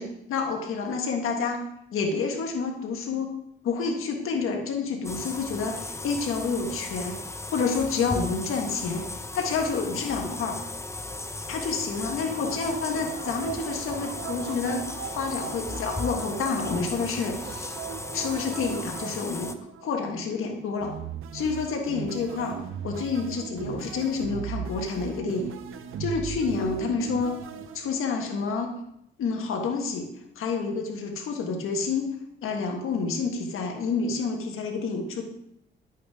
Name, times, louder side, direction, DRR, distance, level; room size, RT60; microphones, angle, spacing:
voice 1, 0.0-1.6 1.9-3.3 3.6-7.2 7.5-9.1 9.3-10.6 11.5-14.8 15.1-17.7 18.1-19.5 19.8-20.9 21.3-22.6 22.8-25.5 26.0-27.4 27.7-28.7 29.2-30.1 30.3-32.1 32.4-35.4, left 4 dB, 90° left, 2 dB, 1.5 m, -29 dB
sound 1, 5.0-19.5, left 2 dB, 15° left, 0.6 m, -36 dB
sound 2, 12.1-20.3 20.8-28.2, right 8 dB, 80° right, 0.7 m, -38 dB
11.0 x 8.4 x 3.6 m, 0.79 s
cardioid pair, 90°, 21 cm